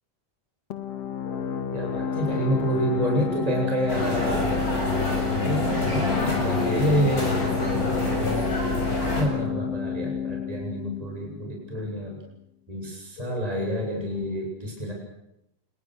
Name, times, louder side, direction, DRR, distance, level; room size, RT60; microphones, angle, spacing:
sound 1, 0.7-12.1, left 8 dB, 50° left, 2.7 m, -30 dB
sound 2, 1.2-3.2 7.2-9.2 13.2-14.0, left 2 dB, 70° left, 5.1 m, -39 dB
voice 1, 1.7-4.5 5.4-8.4 9.1-12.2 12.7-14.9, equal, 10° right, 0 dB, 7.9 m, -28 dB
sound 3, 3.9-9.2, left 1 dB, 25° left, 7.6 m, -27 dB
30.0 x 22.0 x 6.5 m, 0.82 s
omnidirectional pair, 4.0 m